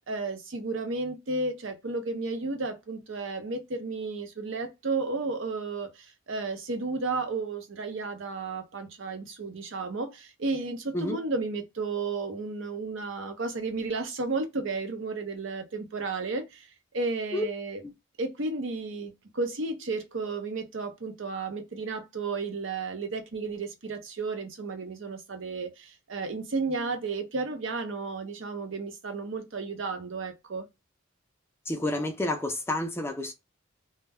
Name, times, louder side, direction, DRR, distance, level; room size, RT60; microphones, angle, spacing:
voice 1, 0.0-17.8 18.2-30.6, right 3 dB, 65° right, 0.6 m, -33 dB
voice 2, 31.7-33.3, left 1 dB, 10° left, 0.3 m, -30 dB
2.1 x 2.1 x 3.4 m
head